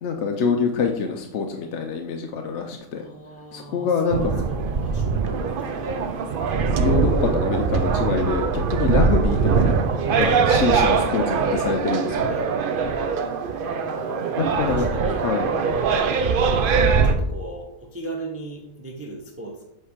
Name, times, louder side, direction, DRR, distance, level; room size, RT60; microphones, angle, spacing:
voice 1, 0.0-3.1 3.5-4.4 6.8-9.7 10.1-12.4 14.4-15.5, left 5 dB, 60° left, 3 dB, 0.9 m, -25 dB
voice 2, 3.0-6.3 12.1-13.2 14.5-19.6, right 2 dB, 15° right, 0 dB, 0.7 m, -38 dB
sound 1, 4.1-17.1, right 5 dB, 60° right, 0.6 m, -22 dB
7.7 x 3.3 x 5.0 m, 0.77 s
omnidirectional pair, 1.4 m